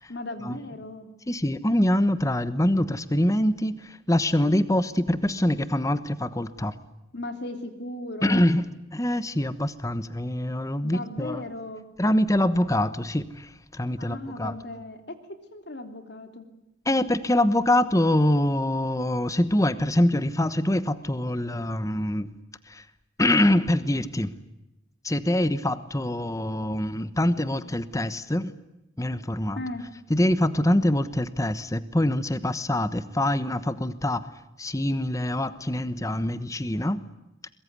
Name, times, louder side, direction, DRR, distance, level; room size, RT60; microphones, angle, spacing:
voice 1, 0.1-1.1 7.1-8.4 10.8-11.8 14.0-15.1 15.5-16.5 29.5-29.8, left 1 dB, 60° left, 7 dB, 3.3 m, -37 dB
voice 2, 1.3-6.7 8.2-8.6 8.9-11.4 12.0-14.6 16.8-22.3 22.7-22.9 23.2-24.3 25.0-28.5 29.0-29.6 30.1-34.3 34.6-37.0, left 1 dB, 15° left, 13 dB, 1.1 m, -24 dB
23.0 x 22.0 x 9.5 m, 0.94 s
head